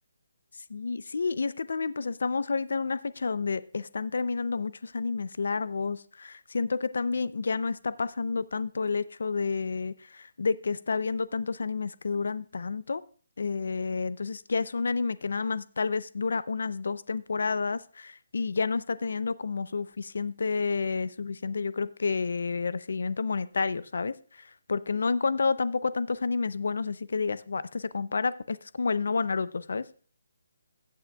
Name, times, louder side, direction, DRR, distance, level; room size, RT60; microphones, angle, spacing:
voice 1, 0.7-13.0 13.4-24.1 24.7-29.9, left 4 dB, 55° left, 17 dB, 0.5 m, -30 dB
15.5 x 8.4 x 2.3 m, 0.42 s
hypercardioid pair, 180°, 0 cm